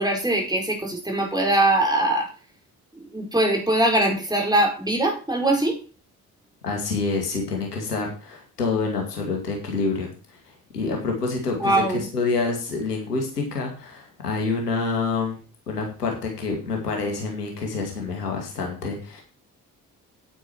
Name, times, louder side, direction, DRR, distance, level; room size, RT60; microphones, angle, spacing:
voice 1, 0.0-2.3 3.1-5.8 11.6-12.0, right 1 dB, 10° right, 1 dB, 4.8 m, -22 dB
voice 2, 6.6-15.4 15.7-19.2, left 4 dB, 80° left, 2 dB, 2.3 m, -27 dB
9.5 x 9.1 x 4.6 m, 0.36 s
figure-of-eight pair, 45°, 46 cm